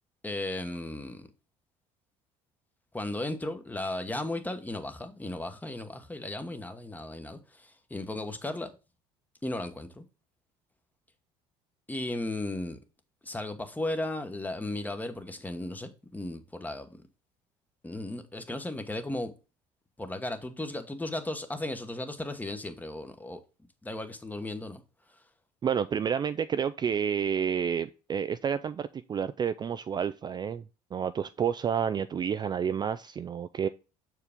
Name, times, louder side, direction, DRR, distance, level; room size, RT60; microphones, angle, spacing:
voice 1, 0.2-1.3 2.9-8.7 9.4-10.0 11.9-12.8 13.2-17.0 17.8-19.3 20.0-23.4 23.8-24.8, left 2 dB, 10° left, 1.0 m, -35 dB
voice 2, 25.6-30.6 30.9-33.7, right 7 dB, 30° right, 0.3 m, -30 dB
6.5 x 4.7 x 3.5 m
supercardioid pair, 80°, 15 cm